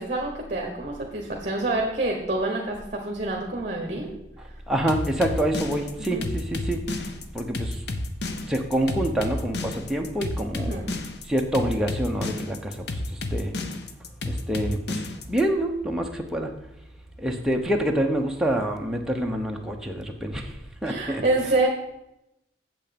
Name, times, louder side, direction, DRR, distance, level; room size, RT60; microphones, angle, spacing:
voice 1, 0.0-4.1 6.0-6.2 10.6-10.9 20.8-21.7, right 2 dB, 40° right, 1 dB, 1.2 m, -27 dB
voice 2, 4.7-6.8 7.3-7.8 8.5-10.8 11.3-12.7 13.3-13.5 14.2-15.0 15.3-16.5 17.2-20.5 20.8-21.2, right 1 dB, 5° right, 1 dB, 0.8 m, -26 dB
sound 1, 4.9-15.4, left 2 dB, 65° left, 0.8 m, -31 dB
8.3 x 7.2 x 5.2 m, 0.87 s
head